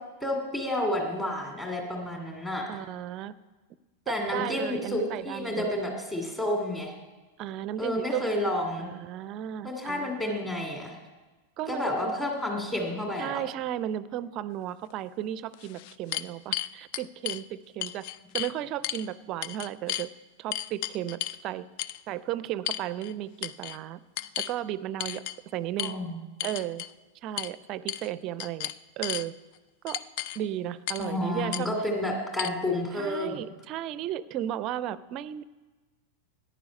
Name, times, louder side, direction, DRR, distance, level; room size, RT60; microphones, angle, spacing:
voice 1, 0.2-2.7 4.1-6.9 7.8-8.9 9.6-10.9 11.7-13.4 25.8-26.2 31.0-33.4, left 1 dB, 15° left, 1 dB, 2.4 m, -30 dB
voice 2, 2.7-3.3 4.1-5.7 7.4-8.3 8.8-10.4 11.6-12.1 13.2-18.0 18.3-20.1 20.4-21.7 22.1-24.0 24.4-25.2 25.5-26.0 26.4-26.8 27.2-29.3 29.8-30.0 30.4-31.7 32.9-35.4, right 12 dB, 40° right, 18 dB, 0.4 m, -34 dB
sound 1, 14.9-15.0 15.5-17.4 17.8-18.5 18.8-19.1 19.4-20.1 20.5-21.4 21.8-22.0 22.7-23.1 23.4-23.8 24.2-24.5 25.0-25.4 25.8-25.9 26.4-26.9 27.4-27.5 27.9-28.1 28.4-29.3 29.9-30.4 30.9-31.1 31.5-31.6 32.4-32.5, left 13 dB, 45° left, 0.3 m, -33 dB
14.0 x 10.0 x 5.2 m, 1.3 s
figure-of-eight pair, 90°, 0 cm